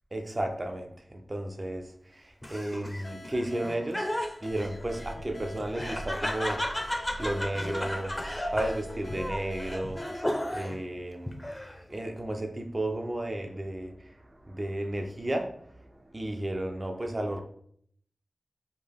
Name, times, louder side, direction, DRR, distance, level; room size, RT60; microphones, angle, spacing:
voice 1, 0.1-4.1 4.4-6.6 7.2-8.2 8.5-10.0 10.5-11.5 11.9-17.4, right 1 dB, 40° right, 4 dB, 0.7 m, -33 dB
Laughter, 2.4-10.8 11.3-11.9, left 1 dB, 15° left, 0.7 m, -34 dB
sound 1, 3.0-11.5, left 2 dB, 70° left, 0.5 m, -48 dB
sound 2, 4.5-10.0, right 2 dB, 80° right, 1.0 m, -44 dB
4.4 x 2.8 x 3.6 m, 0.64 s
wide cardioid pair, 55°, 0 cm